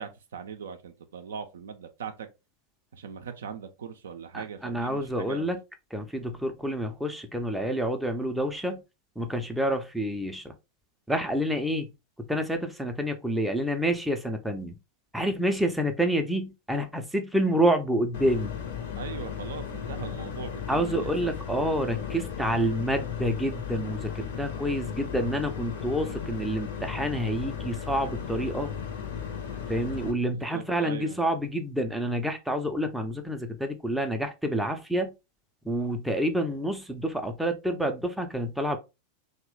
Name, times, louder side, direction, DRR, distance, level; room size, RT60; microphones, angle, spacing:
voice 1, 0.0-2.3 2.9-5.5 18.9-21.3 30.3-31.2, right 7 dB, 65° right, 0.4 m, -40 dB
voice 2, 4.3-5.6 5.9-8.8 9.2-10.5 11.1-11.9 12.2-14.8 15.1-18.5 20.7-28.7 29.7-35.1 35.6-38.8, equal, ahead, 0.4 m, -28 dB
sound 1, 18.1-30.1, left 8 dB, 55° left, 0.6 m, -36 dB
2.9 x 2.1 x 3.1 m
figure-of-eight pair, 90°, 0 cm